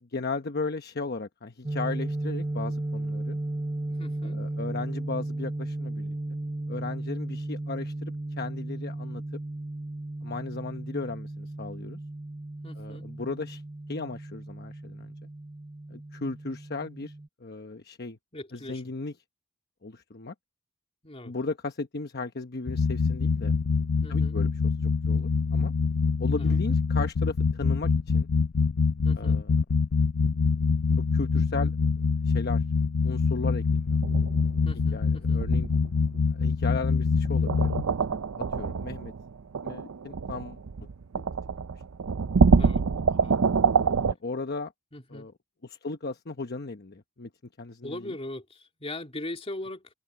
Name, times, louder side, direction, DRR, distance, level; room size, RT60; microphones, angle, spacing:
voice 1, 0.0-3.4 4.3-6.1 6.7-9.2 10.2-12.0 12.8-13.6 13.9-15.1 15.9-17.1 17.4-18.2 18.5-19.1 19.8-20.3 21.2-23.5 24.1-24.5 24.8-25.7 26.2-28.3 29.2-29.5 31.1-31.7 32.3-32.6 33.0-34.0 34.9-35.7 36.3-37.7 38.1-39.1 39.6-40.6 41.2-41.3 44.1-44.7 45.1-45.3 45.6-47.3 47.6-48.1, left 3 dB, 50° left, 1.0 m, -36 dB
sound 1, 1.6-17.3, right 2 dB, 20° right, 1.0 m, -35 dB
voice 2, 4.0-4.4 12.6-13.1 18.3-18.8 21.0-21.3 24.0-24.4 26.3-26.6 29.0-29.4 34.6-35.4 42.5-42.8 43.2-43.4 44.9-45.3 47.8-49.9, left 1 dB, 30° left, 2.7 m, -40 dB
sound 2, 22.7-37.8, left 4 dB, 70° left, 0.6 m, -25 dB
sound 3, 34.0-35.1 35.4-36.2 37.2-44.1, right 5 dB, 80° right, 0.5 m, -26 dB
head